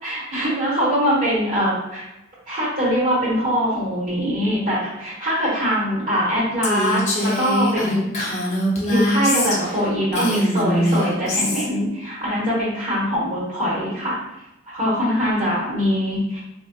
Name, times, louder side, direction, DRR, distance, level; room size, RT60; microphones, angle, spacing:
voice 1, 0.0-2.0 2.5-8.4 8.9-14.2 14.7-16.4, equal, 45° right, -9 dB, 1.3 m, -22 dB
Female speech woman speaking, 6.6-9.8 10.1-11.7, equal, 35° left, 0.7 m, -22 dB
4.1 x 2.4 x 2.3 m, 0.92 s
head